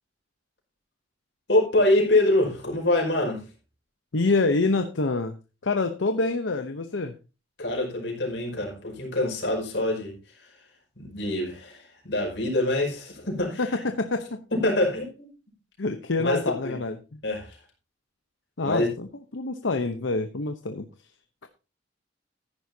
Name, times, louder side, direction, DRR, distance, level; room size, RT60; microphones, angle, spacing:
voice 1, 1.5-3.4 7.6-10.2 11.0-13.6 14.5-15.3 16.3-16.8 17.2-17.6 18.6-18.9, left 1 dB, 70° left, 5.3 m, -25 dB
voice 2, 4.1-5.4 5.6-7.1 13.6-14.4 15.8-17.2 18.6-19.1 19.3-20.9 21.4-21.5, left 3 dB, 85° left, 0.9 m, -26 dB
14.5 x 10.5 x 2.8 m
head